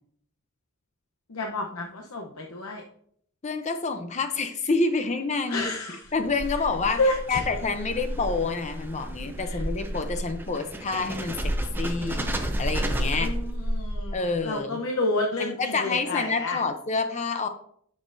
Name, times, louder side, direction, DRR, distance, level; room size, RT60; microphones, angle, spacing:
voice 1, 1.3-2.8 5.5-6.1 6.9-7.4 9.4-9.6 13.2-16.6, left 2 dB, 75° left, 0 dB, 0.8 m, -29 dB
voice 2, 3.4-5.7 6.1-7.0 7.3-11.5 11.8-12.3 12.6-13.3 14.1-14.8 15.4-17.5, left 4 dB, 30° left, 7 dB, 0.6 m, -28 dB
sound 1, 6.1-14.4, equal, 10° right, 0.6 m, -31 dB
9.3 x 6.3 x 2.6 m, 0.66 s
head